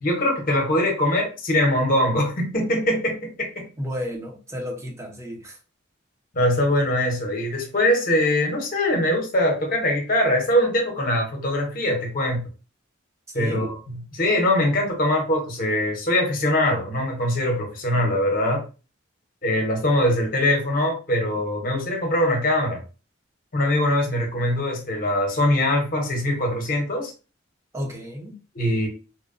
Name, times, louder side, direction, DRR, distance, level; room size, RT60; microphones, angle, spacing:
voice 1, 0.0-3.7 6.3-12.4 13.3-18.6 19.4-22.8 23.5-27.1 28.5-28.9, left 1 dB, 45° left, 2 dB, 0.9 m, -22 dB
voice 2, 3.8-5.6 13.3-13.7 27.7-28.4, equal, 15° right, 1 dB, 0.6 m, -32 dB
2.9 x 2.2 x 2.5 m, 0.33 s
head